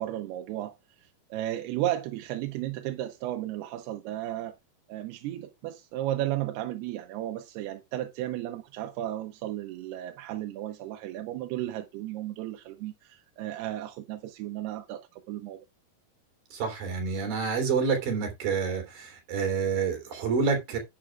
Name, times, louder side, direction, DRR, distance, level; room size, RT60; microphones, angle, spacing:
voice 1, 0.0-4.5 4.9-15.6, right 13 dB, 85° right, 2.8 m, -34 dB
voice 2, 16.5-20.8, right 5 dB, 65° right, 4.7 m, -28 dB
11.0 x 9.9 x 2.4 m
omnidirectional pair, 4.5 m